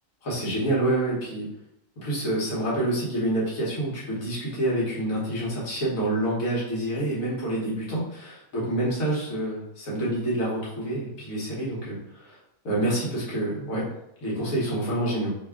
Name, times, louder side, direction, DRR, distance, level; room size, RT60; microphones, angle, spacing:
voice 1, 0.2-1.4 2.0-12.4 12.6-13.9 14.2-15.4, right 1 dB, 65° left, -6 dB, 1.6 m, -27 dB
3.4 x 2.3 x 3.4 m, 0.81 s
omnidirectional pair, 1.5 m